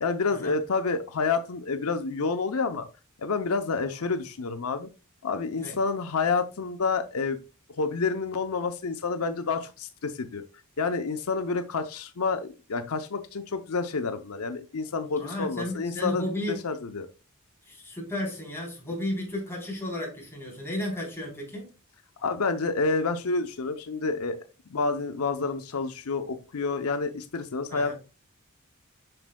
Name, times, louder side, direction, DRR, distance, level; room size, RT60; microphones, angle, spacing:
voice 1, 0.0-2.9 3.2-4.9 5.2-7.4 7.8-10.4 10.8-17.1 22.2-24.4 24.7-27.9, left 4 dB, 90° left, 0.7 m, -29 dB
voice 2, 15.2-16.6 17.7-21.7 27.7-28.0, left 1 dB, 10° left, 3.5 m, -33 dB
7.7 x 6.1 x 2.2 m
head